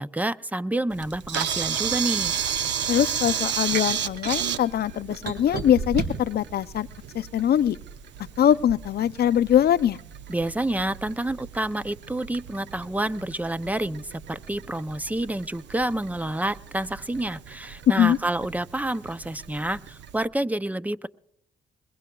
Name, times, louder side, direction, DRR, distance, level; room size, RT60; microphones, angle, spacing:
voice 1, 0.0-2.3 10.3-21.1, right 1 dB, 10° right, 15 dB, 0.5 m, -28 dB
Camera, 0.9-20.2, right 8 dB, 85° right, 0.8 m, -33 dB
voice 2, 2.9-6.9 7.1-7.8 8.4-10.0 18.0-18.2, left 10 dB, 65° left, 14 dB, 0.5 m, -22 dB
sound 1, 3.7-4.4 5.3-6.3 6.9-7.8, right 4 dB, 65° right, 2.0 m, -31 dB
22.0 x 21.5 x 2.3 m, 0.74 s
cardioid pair, 85°, 18 cm